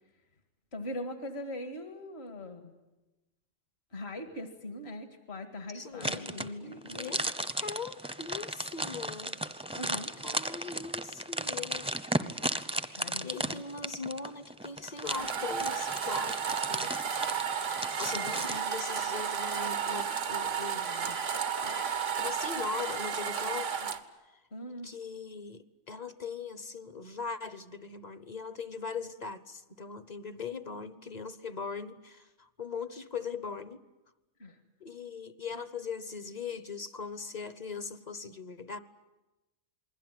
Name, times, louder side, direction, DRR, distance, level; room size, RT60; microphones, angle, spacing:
voice 1, 0.7-2.7 3.9-7.3 9.7-10.1 12.9-13.6 18.1-18.5 24.5-24.9 34.4-34.6, left 1 dB, 60° left, 7 dB, 2.2 m, -41 dB
voice 2, 5.7-6.3 7.0-7.2 7.6-9.4 10.2-11.9 13.2-16.9 17.8-21.2 21.6-23.9 24.8-33.8 34.8-38.8, left 5 dB, 35° left, 13 dB, 1.1 m, -40 dB
sound 1, 6.0-18.6, right 1 dB, 5° right, 0.7 m, -35 dB
sound 2, 15.0-24.0, right 7 dB, 90° right, 1.6 m, -33 dB
28.0 x 21.0 x 9.3 m, 1.1 s
omnidirectional pair, 1.2 m